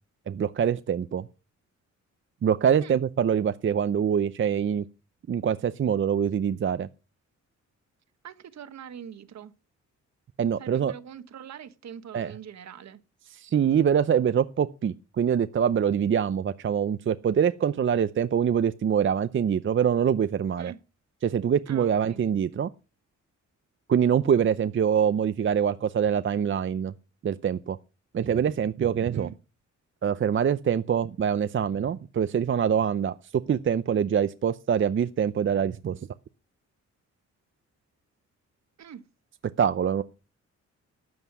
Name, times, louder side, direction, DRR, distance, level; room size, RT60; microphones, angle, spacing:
voice 1, 0.3-1.3 2.4-4.8 5.3-6.9 10.4-10.9 12.1-12.3 13.3-20.7 21.2-22.7 23.9-26.9 27.2-27.8 28.1-29.3 30.0-36.1 39.6-40.0, right 8 dB, 40° right, 0.6 m, -24 dB
voice 2, 8.2-9.5 10.6-13.0 20.6-20.8 21.7-22.2 29.1-29.3 38.8-39.0, right 8 dB, 65° right, 1.3 m, -43 dB
12.5 x 7.9 x 6.1 m
cardioid pair, 105°, 30 cm